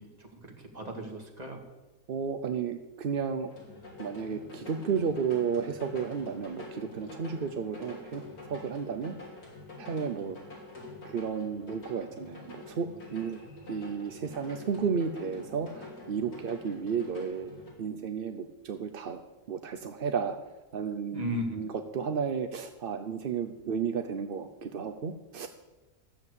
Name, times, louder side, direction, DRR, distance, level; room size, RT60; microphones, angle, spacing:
voice 1, 0.0-1.6 21.1-21.6, equal, 25° right, 2 dB, 2.1 m, -36 dB
voice 2, 2.1-3.5 4.0-8.2 8.5-9.1 9.8-10.4 11.0-13.4 13.7-17.5 17.8-19.2 19.5-20.4 20.7-25.5, right 6 dB, 55° right, 7 dB, 0.6 m, -33 dB
sound 1, 3.5-17.7, left 2 dB, 75° left, 3.7 m, -46 dB
14.0 x 7.4 x 8.1 m, 1.2 s
omnidirectional pair, 1.6 m